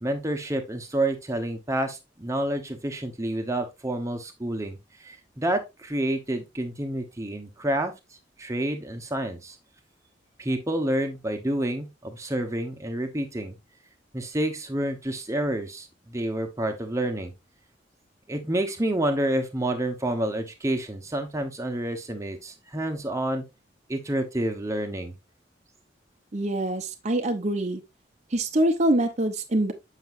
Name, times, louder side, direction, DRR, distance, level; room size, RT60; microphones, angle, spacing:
voice 1, 0.0-7.9 8.4-9.6 10.4-13.5 14.1-17.3 18.3-23.4 23.9-25.1, right 1 dB, 15° right, 1.1 m, -29 dB
voice 2, 26.3-27.8 28.3-29.7, right 1 dB, 40° right, 0.8 m, -24 dB
7.8 x 5.9 x 2.5 m
head